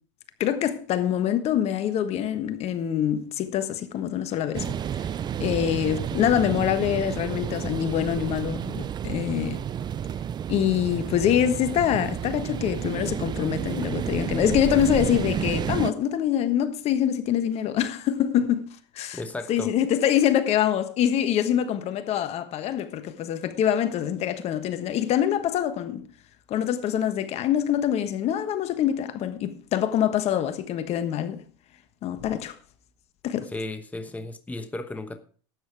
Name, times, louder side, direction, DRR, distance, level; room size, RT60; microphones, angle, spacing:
voice 1, 0.4-4.7 5.4-9.6 10.5-18.7 18.9-19.2 19.5-26.0 26.5-31.4 32.0-32.5 33.2-33.5, left 10 dB, 45° left, 1.3 m, -25 dB
sound 1, 4.5-15.9, right 9 dB, 30° right, 0.6 m, -31 dB
voice 2, 19.1-19.7 33.4-35.2, left 2 dB, 10° left, 1.1 m, -35 dB
12.5 x 8.8 x 4.7 m
hypercardioid pair, 95°, 15 cm